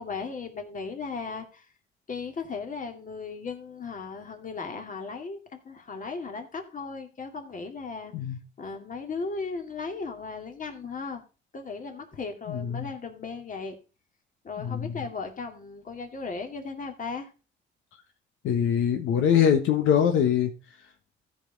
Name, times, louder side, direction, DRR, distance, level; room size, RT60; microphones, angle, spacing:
voice 1, 0.0-1.7 2.1-8.1 8.6-11.2 11.5-13.8 14.4-17.3, left 4 dB, 40° left, 4 dB, 2.2 m, -36 dB
voice 2, 12.5-12.9 14.6-14.9 18.4-20.5, left 8 dB, 85° left, 5 dB, 1.2 m, -23 dB
14.5 x 5.5 x 3.9 m, 0.33 s
cardioid pair, 90°, 20 cm